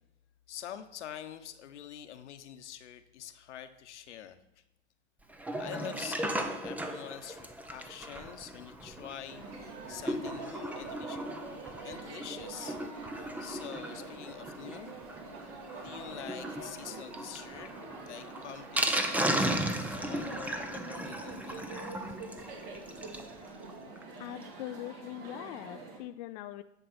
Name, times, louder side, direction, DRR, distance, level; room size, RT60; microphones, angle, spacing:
voice 1, 0.5-4.4 5.6-11.3 11.8-12.8 13.4-15.0 15.8-17.7 18.0-21.9, left 10 dB, 70° left, 9 dB, 1.1 m, -46 dB
Sink (filling or washing), 5.3-23.3 23.7-23.8 24.0-24.1 24.4-24.5, right 1 dB, 5° right, 0.6 m, -36 dB
sound 1, 9.3-26.0, right 3 dB, 55° right, 2.5 m, -45 dB
voice 2, 24.2-26.6, left 14 dB, 40° left, 9 dB, 0.4 m, -42 dB
11.0 x 7.2 x 4.3 m, 0.88 s
hypercardioid pair, 110°, 36 cm